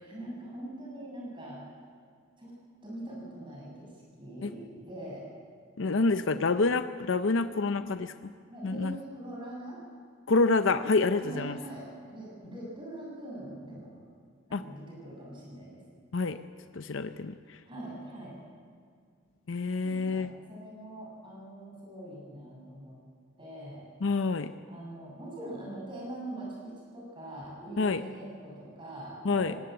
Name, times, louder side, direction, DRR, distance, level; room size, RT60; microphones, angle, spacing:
voice 1, 0.0-1.6 2.4-2.5 2.8-3.9 4.2-5.3 6.3-6.4 8.5-9.8 11.2-13.9 14.5-15.8 17.7-18.3 19.8-23.0 23.4-23.9 24.7-29.6, right 1 dB, 25° right, -3 dB, 7.5 m, -43 dB
voice 2, 5.8-8.3 8.6-9.0 10.3-11.6 14.5-14.6 16.1-16.4 16.7-17.6 19.5-20.3 24.0-24.5 27.8-28.0 29.2-29.6, left 3 dB, 65° left, 10 dB, 0.6 m, -27 dB
19.5 x 17.0 x 7.9 m, 2.1 s
head